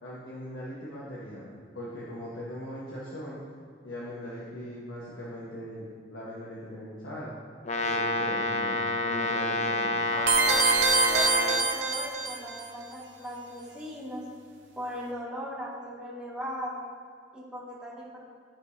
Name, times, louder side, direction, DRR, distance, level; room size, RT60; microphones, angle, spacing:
voice 1, 0.0-3.4 3.8-7.3 7.8-10.1, equal, 90° left, -7 dB, 1.2 m, -40 dB
Brass instrument, 7.6-11.7, left 2 dB, 40° left, 0.5 m, -28 dB
voice 2, 10.1-10.6 11.1-14.2 14.8-16.8 17.3-18.2, equal, 5° right, -8 dB, 1.7 m, -38 dB
sound 1, 10.3-12.6, right 4 dB, 80° right, 0.8 m, -25 dB
13.0 x 4.9 x 2.7 m, 2.2 s
head